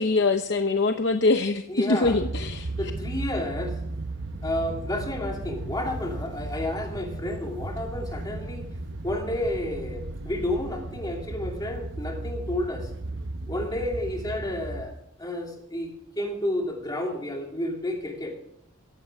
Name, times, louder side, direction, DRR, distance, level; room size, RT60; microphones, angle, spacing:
voice 1, 0.0-2.7, left 3 dB, 60° left, 7 dB, 0.8 m, -23 dB
voice 2, 1.7-2.2 2.8-3.8 4.4-8.7 9.0-12.9 13.5-14.9 15.2-18.4, left 1 dB, 20° left, 1 dB, 2.8 m, -31 dB
sound 1, 2.0-14.9, right 2 dB, 65° right, 0.9 m, -35 dB
17.0 x 15.0 x 3.6 m, 0.73 s
head